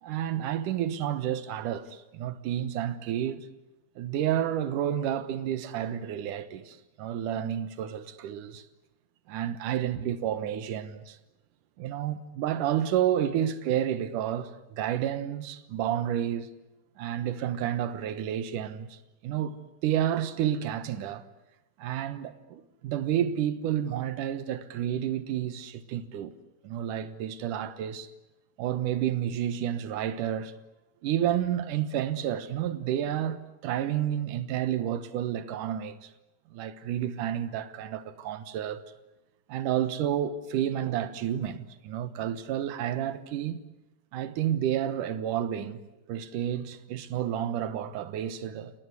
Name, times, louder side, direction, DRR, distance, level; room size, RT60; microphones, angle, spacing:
voice 1, 0.0-3.5 4.0-8.6 9.3-11.2 11.8-16.5 17.0-19.0 19.2-21.3 21.8-26.3 26.6-28.1 28.6-30.5 31.0-36.1 36.5-38.8 39.5-43.6 44.1-45.8 46.1-48.7, right 10 dB, 65° right, 2.2 m, -30 dB
29.5 x 19.0 x 9.6 m
omnidirectional pair, 5.1 m